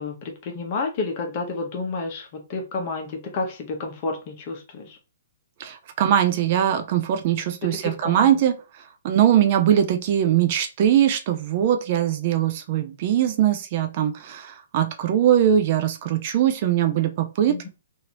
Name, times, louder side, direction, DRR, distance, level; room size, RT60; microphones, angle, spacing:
voice 1, 0.0-5.0 7.8-8.3 17.5-17.7, left 3 dB, 35° left, 1.0 m, -30 dB
voice 2, 5.6-17.7, right 10 dB, 40° right, 0.5 m, -21 dB
3.0 x 2.7 x 2.9 m
hypercardioid pair, 155°, 0 cm